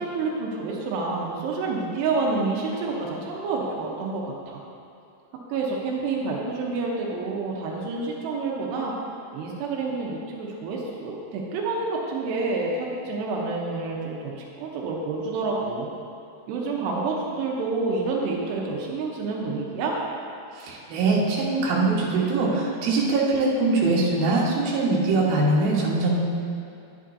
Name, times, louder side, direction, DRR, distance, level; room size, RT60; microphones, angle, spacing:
voice 1, 0.0-4.6 5.5-8.9 9.3-15.9 16.5-20.0, right 3 dB, 90° right, -2 dB, 3.2 m, -28 dB
voice 2, 20.5-26.2, right 3 dB, 70° right, -5 dB, 3.1 m, -22 dB
11.5 x 10.0 x 2.7 m, 2.6 s
omnidirectional pair, 4.8 m